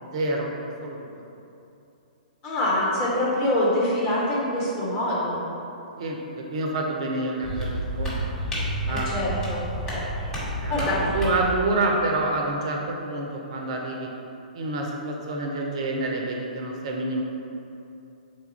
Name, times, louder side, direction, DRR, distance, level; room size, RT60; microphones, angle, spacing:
voice 1, 0.0-1.1 6.0-8.3 8.8-9.1 10.6-14.1 14.5-17.2, right 2 dB, 45° right, 0 dB, 0.4 m, -28 dB
voice 2, 2.4-5.5 8.9-10.0 10.7-11.1, left 1 dB, 30° left, -7 dB, 1.1 m, -25 dB
sound 1, 7.4-11.5, right 1 dB, 10° left, 1.2 m, -30 dB
3.7 x 2.3 x 4.5 m, 2.8 s
figure-of-eight pair, 115°, 5 cm